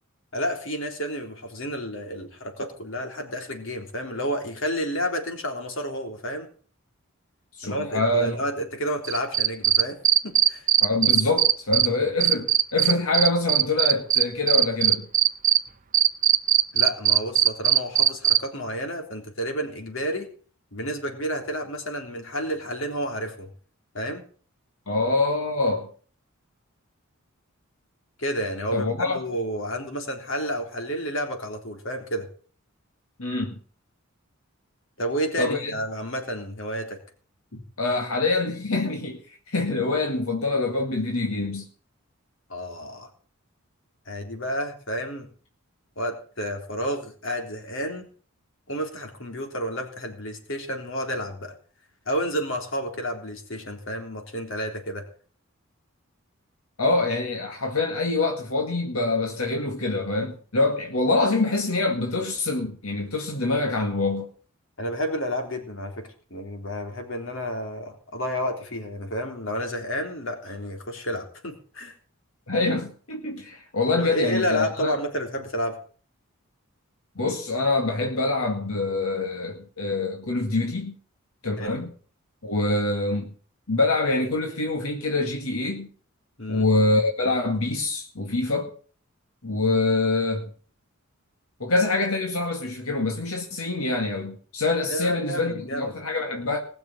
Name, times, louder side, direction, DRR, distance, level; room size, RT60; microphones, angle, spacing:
voice 1, 0.3-6.5 7.6-10.7 16.7-20.3 20.7-23.5 23.9-24.2 28.2-32.3 35.0-37.0 42.5-43.1 44.1-45.3 46.0-48.1 48.7-51.5 52.1-55.1 64.8-72.0 74.0-75.8 81.6-81.7 86.4-86.7 94.9-95.9, equal, 60° left, 3.5 m, -30 dB
voice 2, 7.6-8.4 10.8-15.1 24.9-25.9 28.7-29.2 33.2-33.5 35.4-35.7 37.5-41.7 56.8-64.3 72.5-74.9 77.2-80.9 81.4-81.9 82.4-83.3 83.7-85.9 86.5-88.7 89.4-90.5 91.6-96.6, left 2 dB, 85° left, 2.1 m, -25 dB
Cricket, 9.0-11.9 12.2-15.6 15.9-18.4, right 11 dB, 40° right, 0.7 m, -18 dB
19.5 x 6.8 x 7.4 m
head